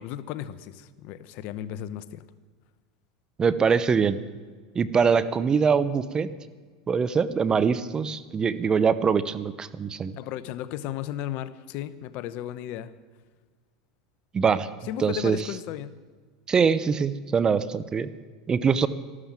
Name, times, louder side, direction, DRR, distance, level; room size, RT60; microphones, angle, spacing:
voice 1, 0.0-2.2 10.2-12.9 14.8-16.0, left 12 dB, 60° left, 15 dB, 0.9 m, -35 dB
voice 2, 3.4-4.2 4.7-6.3 6.9-10.2 14.3-14.7 15.0-15.4 16.5-18.1 18.5-18.9, right 6 dB, 25° right, 15 dB, 0.8 m, -23 dB
13.5 x 12.5 x 7.5 m, 1.5 s
supercardioid pair, 105°, 3 cm